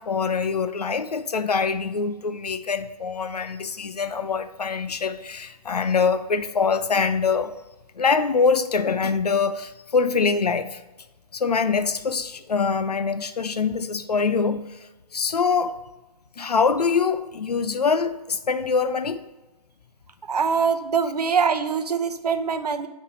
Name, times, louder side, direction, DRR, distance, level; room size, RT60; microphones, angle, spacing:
voice 1, 0.0-7.5 8.0-10.8 11.3-14.7 15.1-15.7 16.4-19.2, left 5 dB, 85° left, 0.6 m, -24 dB
voice 2, 20.3-22.9, right 6 dB, 80° right, 0.7 m, -23 dB
8.1 x 3.3 x 6.3 m
figure-of-eight pair, 130°, 20 cm